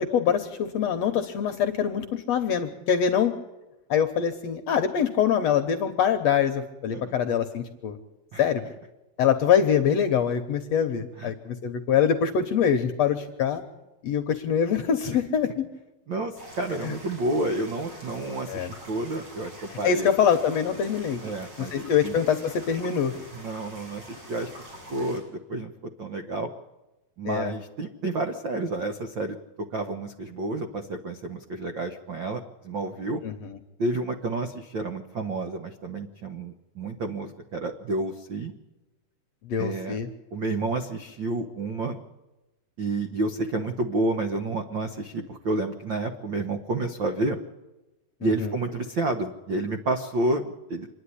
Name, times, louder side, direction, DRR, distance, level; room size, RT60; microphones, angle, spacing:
voice 1, 0.0-3.3 3.9-8.0 8.4-8.6 9.2-13.6 14.0-15.7 16.8-16.9 18.5-18.7 19.7-21.2 21.6-23.1 27.2-27.5 33.2-33.6 39.4-40.1 48.2-48.6, left 8 dB, 65° left, 8 dB, 1.9 m, -24 dB
voice 2, 16.1-20.1 21.2-22.1 23.3-24.5 24.9-25.2 25.5-25.7 26.0-26.5 27.2-29.4 29.7-33.2 33.8-38.5 39.6-40.0 40.3-42.0 42.8-47.4 48.2-50.9, right 2 dB, 70° right, 6 dB, 1.1 m, -30 dB
sound 1, 16.4-25.2, equal, 30° right, 8.8 m, -45 dB
26.5 x 10.5 x 9.9 m, 1.0 s
omnidirectional pair, 4.2 m